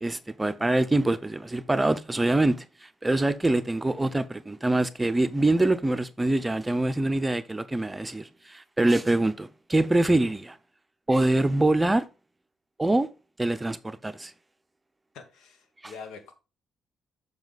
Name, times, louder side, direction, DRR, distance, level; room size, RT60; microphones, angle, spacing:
voice 1, 0.0-10.6 11.1-12.1 12.8-13.1 13.4-14.3 15.8-15.9, right 2 dB, 15° right, 0.6 m, -24 dB
voice 2, 15.1-16.3, left 5 dB, 85° left, 1.5 m, -44 dB
7.1 x 5.5 x 4.0 m
cardioid pair, 90°, 0 cm